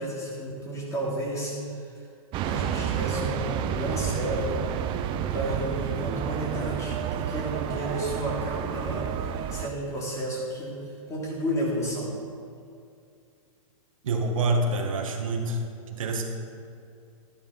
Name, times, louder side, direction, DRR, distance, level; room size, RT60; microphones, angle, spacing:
voice 1, 0.0-2.1 2.4-4.8 5.3-12.1, equal, 15° left, -4 dB, 3.3 m, -32 dB
sound 1, 2.3-9.7, right 8 dB, 30° right, 0.6 m, -30 dB
voice 2, 14.0-15.6 15.9-16.2, right 2 dB, 65° right, 3 dB, 1.7 m, -26 dB
12.5 x 12.0 x 4.2 m, 2.4 s
hypercardioid pair, 125°, 18 cm